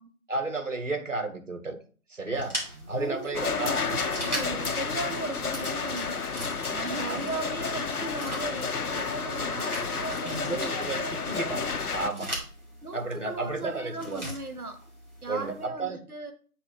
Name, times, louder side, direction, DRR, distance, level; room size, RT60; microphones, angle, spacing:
voice 1, 0.3-1.8 2.1-2.6 2.9-3.8 7.0-7.2 10.2-11.6 11.9-12.3 12.9-14.3 15.3-16.0, right 3 dB, 55° right, 1.1 m, -32 dB
sound 1, 2.3-15.7, equal, 30° right, 2.4 m, -41 dB
voice 2, 3.0-11.2 11.6-11.7 12.8-14.8 15.2-16.3, right 2 dB, 80° right, 1.0 m, -37 dB
sound 2, 3.3-12.1, left 5 dB, 85° left, 0.8 m, -31 dB
8.1 x 2.7 x 5.0 m
figure-of-eight pair, 180°, 44 cm